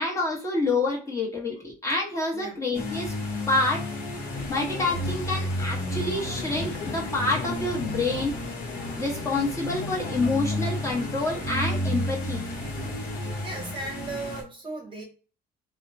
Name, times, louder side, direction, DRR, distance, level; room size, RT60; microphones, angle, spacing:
voice 1, 0.0-3.1 3.5-3.8 4.5-8.3 9.0-12.4 12.8-12.9, left 2 dB, 15° left, 0.9 m, -27 dB
Versailles - Fountain - Bassin de Latone, 2.7-14.4, left 1 dB, 55° left, 0.9 m, -32 dB
sound 1, 4.3-11.3, left 6 dB, 90° left, 0.4 m, -40 dB
voice 2, 13.4-15.0, right 2 dB, 30° right, 0.8 m, -36 dB
2.8 x 2.1 x 2.6 m
cardioid pair, 110°, 17 cm